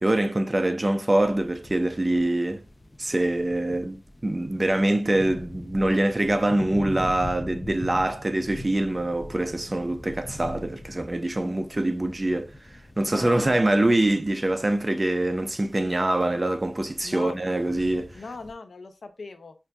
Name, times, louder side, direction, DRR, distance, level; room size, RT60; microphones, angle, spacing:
voice 1, 0.0-2.6 3.0-18.2, right 1 dB, 30° right, 0.4 m, -24 dB
sound 1, 1.1-18.5, left 1 dB, 30° left, 0.4 m, -42 dB
voice 2, 13.1-13.7 17.0-17.4 18.1-19.5, left 3 dB, 70° left, 0.6 m, -39 dB
5.7 x 2.6 x 2.2 m
wide cardioid pair, 65°, 0 cm